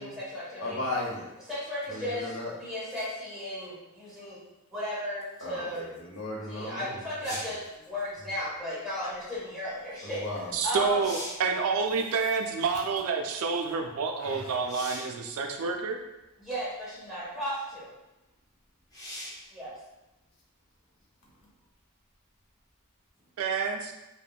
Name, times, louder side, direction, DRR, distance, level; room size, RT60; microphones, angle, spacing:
voice 1, 0.0-0.8 1.5-4.4 4.7-5.9 6.5-7.6 7.8-11.0 16.4-17.9 19.5-19.7, equal, ahead, -11 dB, 1.3 m, -35 dB
voice 2, 0.6-1.3 1.9-2.5 5.4-6.9 7.2-7.3 10.0-10.5 14.2-14.7, left 2 dB, 70° left, -3 dB, 0.8 m, -36 dB
sound 1, 7.2-7.7 10.3-10.4 10.8-11.5 14.7-15.2 16.2-16.3 18.9-19.5 23.1-23.2, equal, 15° left, 0.6 m, -40 dB
voice 3, 10.5-16.0 23.4-23.9, right 5 dB, 75° right, 4 dB, 0.3 m, -28 dB
3.4 x 2.1 x 2.3 m, 0.97 s
head